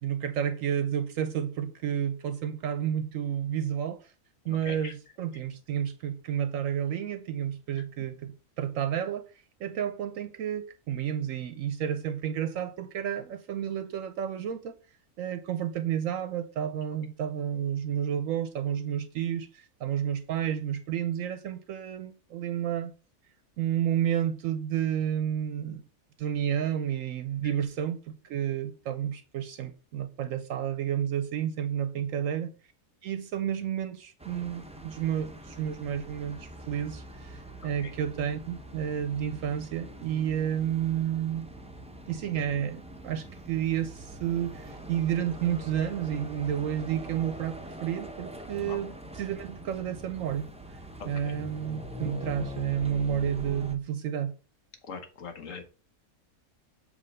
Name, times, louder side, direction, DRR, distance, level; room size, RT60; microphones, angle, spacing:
voice 1, 0.0-4.1 4.5-9.3 9.6-14.8 15.2-22.9 23.6-25.8 26.2-28.0 28.2-32.5 33.0-41.5 42.1-50.8 51.0-54.3, right 9 dB, 75° right, 0.9 m, -31 dB
sound 1, 34.2-53.8, equal, 10° right, 0.3 m, -43 dB
voice 2, 54.9-55.6, left 5 dB, 65° left, 1.3 m, -41 dB
7.6 x 3.1 x 5.3 m
omnidirectional pair, 1.5 m